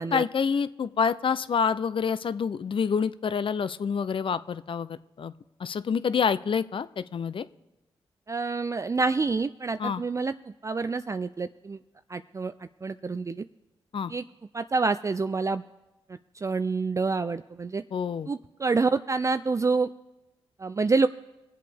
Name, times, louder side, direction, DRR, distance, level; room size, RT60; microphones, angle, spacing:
voice 1, 0.1-5.3 5.6-7.5 9.8-10.0 13.9-14.1 17.9-18.3, left 6 dB, 55° left, 15 dB, 0.5 m, -27 dB
voice 2, 8.3-10.3 10.6-11.8 12.1-12.5 12.8-13.4 14.1-14.2 14.5-15.6 16.4-17.8 18.3-19.9 20.6-21.1, right 4 dB, 30° right, 11 dB, 0.3 m, -27 dB
22.5 x 7.6 x 3.5 m, 1.0 s
supercardioid pair, 50°, 11 cm